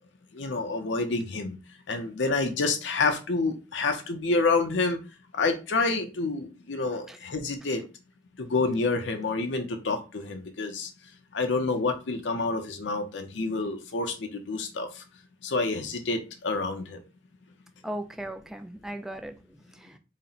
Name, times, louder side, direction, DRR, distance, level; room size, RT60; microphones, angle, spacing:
voice 1, 0.3-1.6 1.9-5.0 5.3-7.8 8.4-10.9 11.3-15.0 15.4-17.0, left 3 dB, 75° left, 0.6 m, -28 dB
voice 2, 17.8-20.0, right 1 dB, ahead, 0.3 m, -38 dB
4.1 x 2.1 x 3.9 m
head